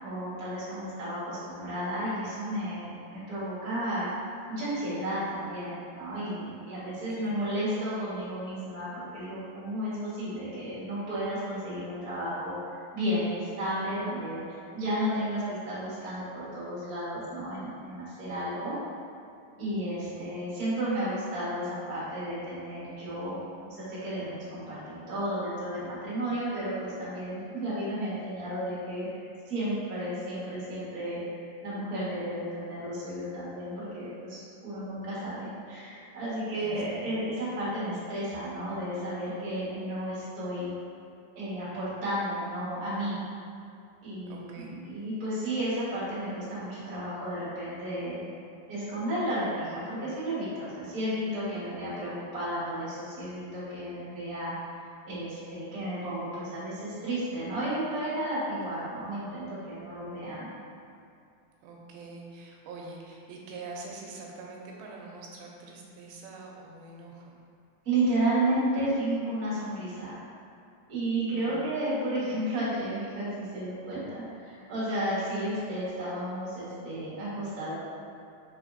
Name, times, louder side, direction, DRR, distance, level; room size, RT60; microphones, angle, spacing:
voice 1, 0.0-4.1 4.5-12.6 12.9-14.4 14.7-18.7 19.6-23.4 23.6-29.2 29.4-31.2 31.6-40.7 41.3-43.2 44.0-48.3 48.7-54.5 55.1-60.5 67.8-70.2 70.9-77.7, right 1 dB, 45° right, -10 dB, 1.1 m, -32 dB
voice 2, 6.8-7.3 20.0-20.3 36.6-37.3 44.3-44.8 58.8-58.9 61.6-67.4 71.2-71.6, right 3 dB, 90° right, -1 dB, 2.5 m, -45 dB
4.8 x 3.9 x 2.6 m, 2.5 s
omnidirectional pair, 4.1 m